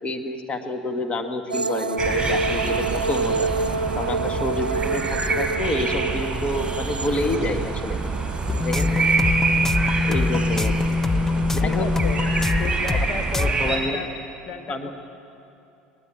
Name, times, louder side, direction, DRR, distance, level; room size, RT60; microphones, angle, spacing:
voice 1, 0.0-3.5 3.9-5.0 5.3-8.0 8.6-9.1 10.0-10.8 11.5-11.9 12.9-13.0 13.4-14.0 14.7-14.9, left 2 dB, 25° left, 6 dB, 1.8 m, -28 dB
sound 1, 1.5-9.7 10.1-10.9 12.2-12.5, right 4 dB, 85° right, 0.6 m, -28 dB
sound 2, 2.0-13.8, right 4 dB, 15° right, 5.9 m, -26 dB
sound 3, 8.5-13.1 13.3-13.5, left 3 dB, 10° left, 0.6 m, -23 dB
voice 2, 11.3-12.3 12.6-14.1 14.5-14.9, left 4 dB, 40° left, 5 dB, 1.7 m, -33 dB
22.0 x 20.0 x 8.4 m, 2.7 s
figure-of-eight pair, 70°, 5 cm